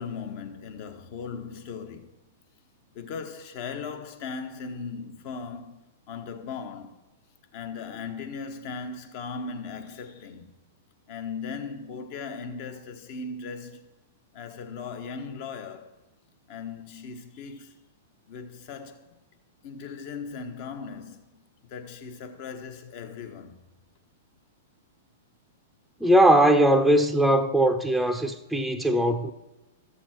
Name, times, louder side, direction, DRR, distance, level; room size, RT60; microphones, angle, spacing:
voice 1, 0.0-2.2 2.9-7.0 7.5-10.5 11.1-13.9 14.3-15.9 16.5-17.8 18.3-19.1 19.6-23.6, left 5 dB, 50° left, 1.2 m, -38 dB
voice 2, 26.0-29.3, right 1 dB, ahead, 0.7 m, -20 dB
13.0 x 7.2 x 4.5 m
hypercardioid pair, 110°, 0 cm